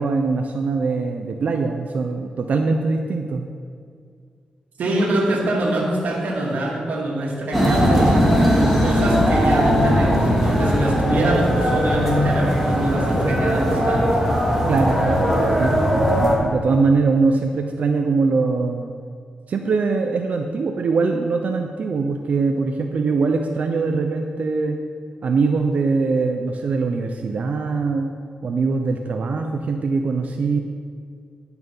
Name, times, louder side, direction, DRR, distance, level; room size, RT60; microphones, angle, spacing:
voice 1, 0.0-3.5 14.7-18.9 19.5-24.8 25.2-28.1 28.4-30.6, right 4 dB, 60° right, 3 dB, 0.6 m, -22 dB
voice 2, 4.8-8.2 8.8-14.2, right 1 dB, 85° right, -3 dB, 2.1 m, -24 dB
sound 1, 7.5-16.3, equal, 5° left, 2.3 m, -19 dB
11.0 x 5.9 x 5.6 m, 2.1 s
wide cardioid pair, 120°, 3 cm